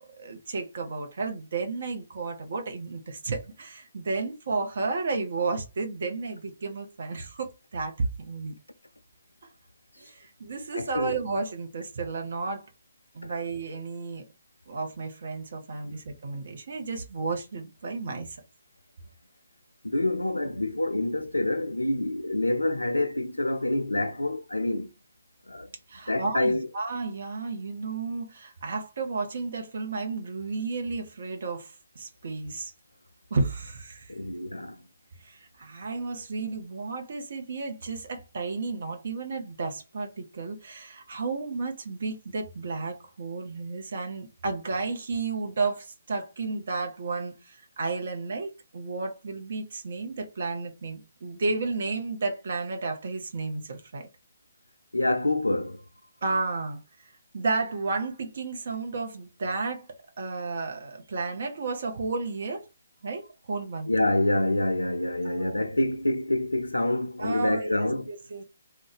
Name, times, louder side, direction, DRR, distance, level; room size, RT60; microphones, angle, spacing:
voice 1, 0.0-8.5 10.0-12.7 13.1-14.3 14.7-18.4 25.9-32.7 33.3-34.1 35.2-54.1 56.2-56.8 57.3-59.9 60.2-62.6 63.0-63.9 65.2-65.6 67.2-68.4, right 3 dB, 55° right, 0.8 m, -32 dB
voice 2, 10.7-11.2 13.2-13.4 15.8-16.0 19.8-24.9 25.5-25.7 26.1-26.7 34.1-34.8 54.9-55.8 63.9-68.1, left 1 dB, 85° left, 0.3 m, -27 dB
2.5 x 2.2 x 3.9 m
figure-of-eight pair, 135°, 0 cm